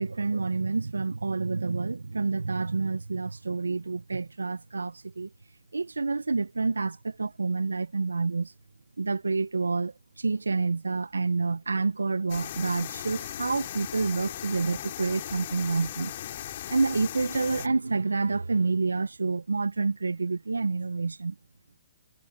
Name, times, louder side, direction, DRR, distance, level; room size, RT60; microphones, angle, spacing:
voice 1, 0.0-5.3 5.7-8.5 9.0-16.4 16.7-21.3, right 4 dB, 85° right, 1.5 m, -28 dB
sound 1, 12.3-17.7, left 12 dB, 50° left, 3.1 m, -38 dB
figure-of-eight pair, 130°, 0 cm